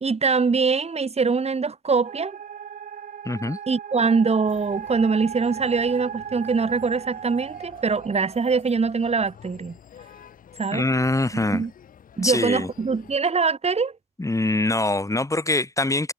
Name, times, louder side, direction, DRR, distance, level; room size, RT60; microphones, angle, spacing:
voice 1, 0.0-2.4 3.7-9.8 10.6-10.8 11.5-11.7 12.2-13.9, right 4 dB, 50° right, 1.4 m, -23 dB
sound 1, 2.0-8.6, right 8 dB, 80° right, 0.9 m, -37 dB
voice 2, 3.2-3.6 10.7-11.6 12.2-12.7 14.2-16.1, left 2 dB, 25° left, 1.5 m, -23 dB
sound 2, 4.5-13.2, left 8 dB, 85° left, 3.8 m, -49 dB
cardioid pair, 40°, 14 cm